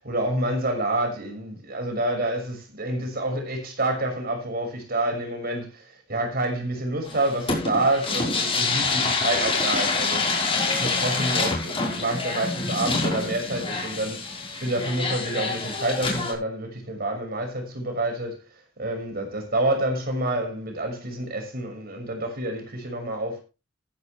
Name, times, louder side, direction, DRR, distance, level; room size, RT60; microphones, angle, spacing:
voice 1, 0.0-18.4 18.8-23.4, right 1 dB, 50° right, 6.2 m, -28 dB
sound 1, 7.0-16.3, left 3 dB, 25° left, 6.0 m, -26 dB
15.0 x 11.0 x 3.5 m
head